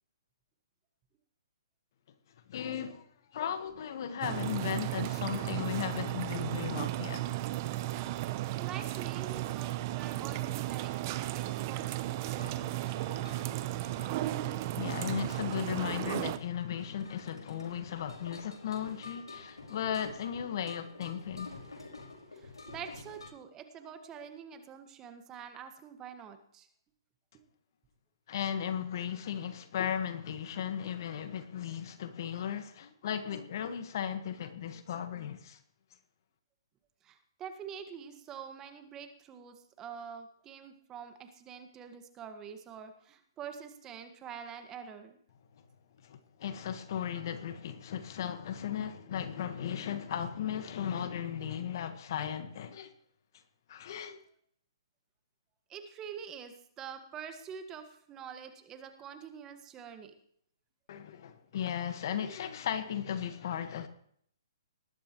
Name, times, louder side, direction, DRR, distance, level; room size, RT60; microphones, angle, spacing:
voice 1, 2.5-3.1 3.3-7.2 14.7-21.5 28.3-35.6 46.0-52.9 53.7-54.2 60.9-63.9, left 9 dB, 50° left, 1.5 m, -36 dB
sound 1, 4.2-16.4, right 15 dB, 40° right, 0.8 m, -35 dB
voice 2, 8.6-12.4 22.3-26.7 37.0-45.2 55.7-60.1, right 7 dB, 20° right, 1.6 m, -46 dB
sound 2, 12.3-23.3, left 3 dB, 90° left, 5.1 m, -49 dB
19.5 x 12.0 x 3.1 m
hypercardioid pair, 135°, 2 cm